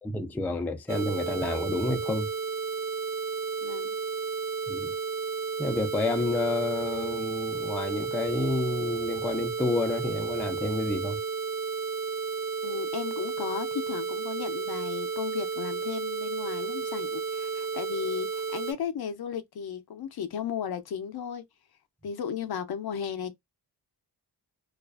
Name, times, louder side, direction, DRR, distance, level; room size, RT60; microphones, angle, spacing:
voice 1, 0.0-2.3 4.7-4.9 5.6-11.2, left 2 dB, 5° left, 0.3 m, -29 dB
sound 1, 0.9-18.7, right 5 dB, 40° right, 0.6 m, -32 dB
voice 2, 3.6-4.0 12.6-21.4 22.0-23.3, left 8 dB, 65° left, 0.5 m, -35 dB
2.4 x 2.3 x 2.2 m
wide cardioid pair, 105°, 42 cm